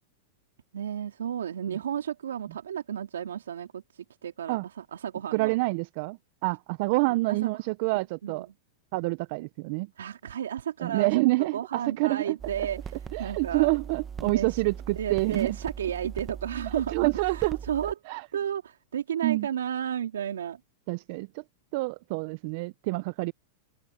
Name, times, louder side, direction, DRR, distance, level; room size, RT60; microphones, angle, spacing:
voice 1, 0.7-5.6 7.3-7.5 8.2-8.4 10.0-11.1 11.5-13.7 14.2-14.6 14.9-17.9 18.3-20.6, right 9 dB, 90° right, 3.3 m, -33 dB
voice 2, 5.3-8.5 8.9-9.9 10.8-12.4 13.1-15.5 16.9-17.6 18.1-18.3 19.2-19.5 20.9-21.4 21.7-23.3, right 23 dB, 55° right, 0.6 m, -27 dB
sound 1, 12.4-17.9, right 7 dB, 20° right, 1.2 m, -40 dB
open air
hypercardioid pair, 120°, 0 cm